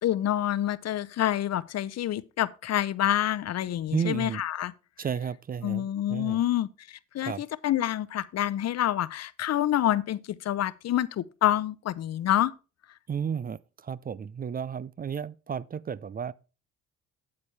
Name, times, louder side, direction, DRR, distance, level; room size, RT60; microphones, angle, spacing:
voice 1, 0.0-4.7 5.6-12.5, left 12 dB, 60° left, 0.7 m, -27 dB
voice 2, 3.9-4.4 5.0-6.4 7.2-7.4 13.1-16.3, right 7 dB, 30° right, 0.4 m, -33 dB
8.7 x 8.4 x 3.2 m
cardioid pair, 90°, 30 cm